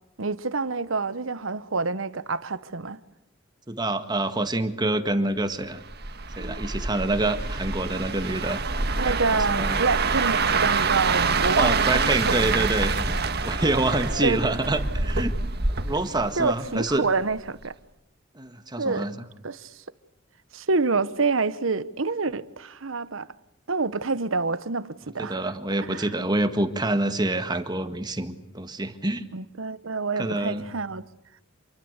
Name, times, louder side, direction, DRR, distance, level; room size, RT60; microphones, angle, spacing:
voice 1, 0.2-3.0 6.4-6.6 8.1-8.2 9.0-12.7 13.4-13.5 14.2-14.6 16.4-17.7 18.8-19.1 19.4-19.7 20.5-23.3 23.7-25.4 25.8-26.1 29.3-31.1, right 4 dB, 80° right, 1.1 m, -27 dB
voice 2, 3.7-5.8 6.4-8.6 9.3-9.8 11.5-15.3 15.7-17.0 18.4-19.1 25.2-29.3 30.2-30.7, right 2 dB, 20° right, 1.7 m, -27 dB
sound 1, 5.9-17.0 17.3-17.6, right 4 dB, 55° right, 1.8 m, -26 dB
28.0 x 23.0 x 8.1 m
head